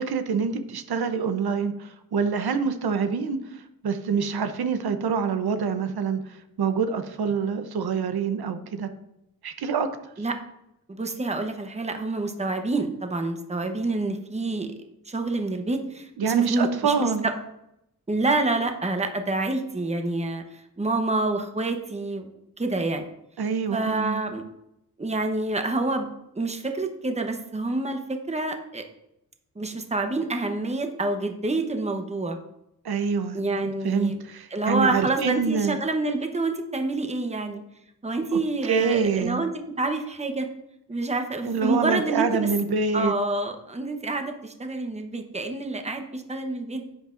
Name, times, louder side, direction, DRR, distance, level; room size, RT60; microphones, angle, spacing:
voice 1, 0.0-6.2 6.6-8.9 9.4-9.9 16.2-17.3 23.4-24.2 32.8-33.4 33.8-35.8 38.7-39.4 41.5-43.1, right 5 dB, 85° right, 9 dB, 0.8 m, -26 dB
voice 2, 10.9-14.7 15.1-17.3 18.1-20.4 20.8-22.3 22.6-23.1 23.7-24.4 25.0-26.1 26.3-28.8 29.6-32.4 33.3-34.2 34.5-37.6 38.0-40.5 40.9-42.5 42.9-46.8, right 2 dB, 20° right, 5 dB, 0.9 m, -27 dB
10.5 x 8.0 x 2.5 m, 0.82 s
wide cardioid pair, 105°, 37 cm